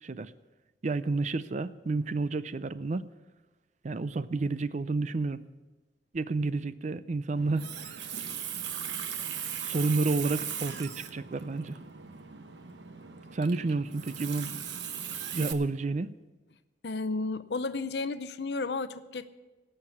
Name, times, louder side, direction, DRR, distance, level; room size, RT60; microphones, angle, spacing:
voice 1, 0.8-3.1 3.8-5.4 6.1-8.1 9.6-11.8 13.3-14.5 15.3-16.2, right 3 dB, 45° right, 15 dB, 0.5 m, -30 dB
Water tap faucet, 7.4-15.5, right 8 dB, 90° right, 1.0 m, -38 dB
voice 2, 16.8-19.3, left 3 dB, 70° left, 13 dB, 0.6 m, -33 dB
17.5 x 6.7 x 7.2 m, 1.2 s
head